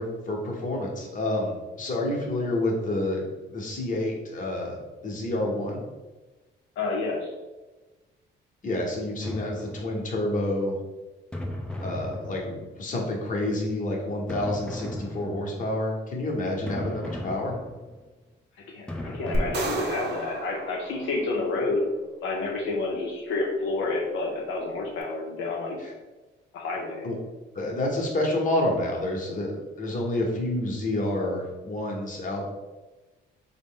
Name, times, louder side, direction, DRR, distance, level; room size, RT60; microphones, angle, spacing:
voice 1, 0.0-4.8 5.0-5.8 8.6-10.8 11.8-17.6 25.8-25.9 27.0-27.2 27.5-32.5, left 1 dB, 40° left, -1 dB, 0.9 m, -29 dB
voice 2, 6.8-7.3 18.7-21.8 22.2-25.8 26.5-27.1, left 3 dB, 80° left, -2 dB, 0.6 m, -29 dB
sound 1, 9.2-10.2 11.3-12.9 14.3-15.7 16.7-18.1 18.9-20.3, left 1 dB, 5° left, 0.4 m, -37 dB
sound 2, 19.3-21.7, right 2 dB, 55° right, 0.6 m, -32 dB
3.7 x 2.1 x 3.6 m, 1.2 s
cardioid pair, 90°, 20 cm